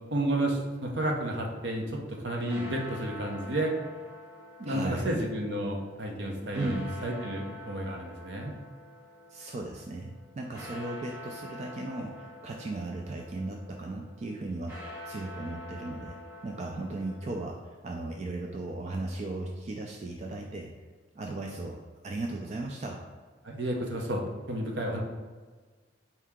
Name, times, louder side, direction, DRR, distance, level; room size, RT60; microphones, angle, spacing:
voice 1, 0.1-3.8 4.6-8.5 23.4-24.2 24.5-25.0, right 1 dB, 70° right, 1 dB, 0.8 m, -31 dB
sound 1, 2.1-17.5, left 1 dB, 10° right, 0.9 m, -47 dB
voice 2, 4.7-5.1 6.5-6.9 9.3-16.2 16.4-20.7 21.1-21.8 22.0-23.0, right 2 dB, 35° right, 1 dB, 0.3 m, -36 dB
4.5 x 2.8 x 3.5 m, 1.4 s
head